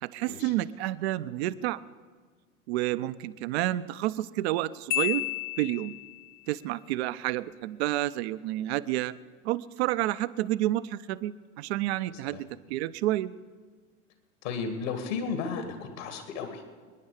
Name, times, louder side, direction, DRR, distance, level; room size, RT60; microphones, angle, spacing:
voice 1, 0.0-1.8 2.7-5.3 5.6-5.9 6.5-9.2 9.4-13.3, right 15 dB, 50° right, 14 dB, 0.7 m, -30 dB
Marimba xylophone, 4.9-6.3, left 18 dB, 25° left, 0.4 m, -31 dB
voice 2, 14.4-16.6, left 5 dB, 55° left, 6 dB, 2.2 m, -34 dB
27.0 x 10.5 x 5.0 m, 1.5 s
figure-of-eight pair, 90°, 43 cm